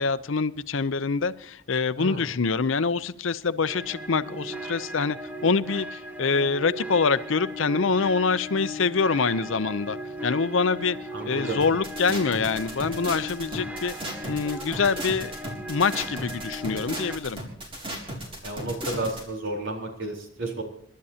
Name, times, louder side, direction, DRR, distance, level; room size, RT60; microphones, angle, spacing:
voice 1, 0.0-10.0 10.2-11.0 11.3-13.9 14.3-15.3 15.7-17.4, left 4 dB, 70° left, 0.6 m, -25 dB
voice 2, 2.0-2.4 11.1-11.6 18.4-20.6, right 2 dB, 70° right, 4.0 m, -32 dB
sound 1, 3.7-17.2, equal, 10° right, 1.2 m, -37 dB
sound 2, 11.6-19.2, right 1 dB, 25° right, 3.6 m, -35 dB
28.5 x 12.5 x 2.8 m
head